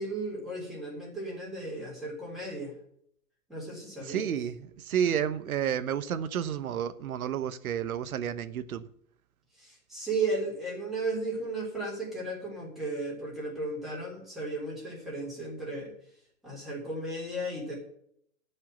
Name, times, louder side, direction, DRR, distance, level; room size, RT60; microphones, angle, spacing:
voice 1, 0.0-2.7 3.5-4.3 9.6-15.9 16.4-17.7, right 2 dB, ahead, -5 dB, 3.7 m, -35 dB
voice 2, 4.0-8.8, right 9 dB, 80° right, 11 dB, 1.1 m, -31 dB
12.0 x 5.7 x 9.1 m, 0.67 s
hypercardioid pair, 165°, 42 cm